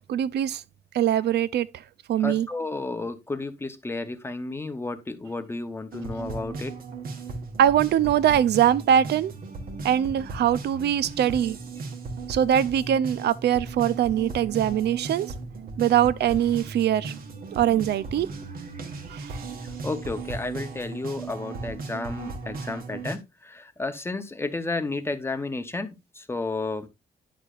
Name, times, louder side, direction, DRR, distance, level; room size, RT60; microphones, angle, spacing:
voice 1, 0.1-0.6 0.9-1.7 2.1-2.5 7.6-9.3 9.8-11.6 12.3-15.3 15.8-17.1 17.5-18.3 19.1-19.4, right 10 dB, 85° right, 0.5 m, -22 dB
voice 2, 2.2-6.7 19.6-26.9, left 3 dB, 15° left, 0.7 m, -32 dB
sound 1, 5.9-23.2, right 3 dB, 60° right, 1.4 m, -37 dB
10.0 x 6.6 x 2.4 m
wide cardioid pair, 170°, 17 cm